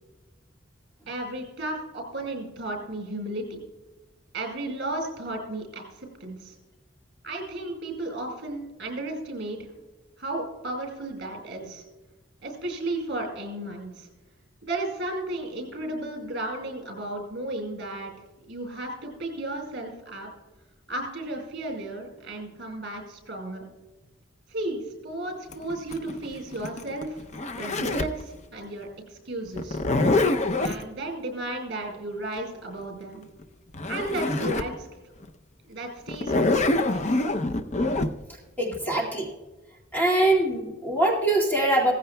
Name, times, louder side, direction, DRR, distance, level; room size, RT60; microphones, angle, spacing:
voice 1, 1.1-3.6 4.3-6.5 7.2-9.7 10.2-11.8 12.4-14.1 14.6-18.1 18.5-20.3 20.9-23.7 24.5-27.2 27.6-29.8 30.6-33.2 33.9-34.9 35.6-37.0, right 1 dB, 55° right, 2 dB, 4.6 m, -34 dB
Zipper (clothing), 25.5-28.2 29.6-30.8 33.4-33.5 33.7-34.7 35.2-35.3 36.1-38.1, left 2 dB, 35° left, 0.6 m, -25 dB
voice 2, 38.6-39.3 39.9-41.9, right 1 dB, 10° left, -3 dB, 2.1 m, -23 dB
16.5 x 15.0 x 2.3 m, 1.1 s
head